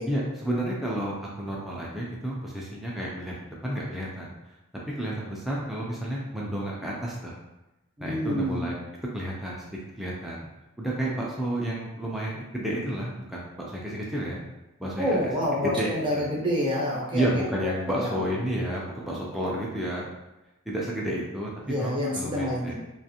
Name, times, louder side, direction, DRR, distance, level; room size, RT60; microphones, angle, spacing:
voice 1, 0.1-4.3 5.0-7.4 8.0-8.7 9.1-10.5 10.8-14.4 14.8-15.2 15.6-16.3 17.1-20.1 20.7-22.7, right 1 dB, ahead, -5 dB, 0.3 m, -31 dB
voice 2, 8.0-8.6 15.0-17.2 17.6-18.1 21.6-22.7, equal, 20° right, -5 dB, 0.7 m, -28 dB
2.5 x 2.4 x 2.7 m, 0.99 s
head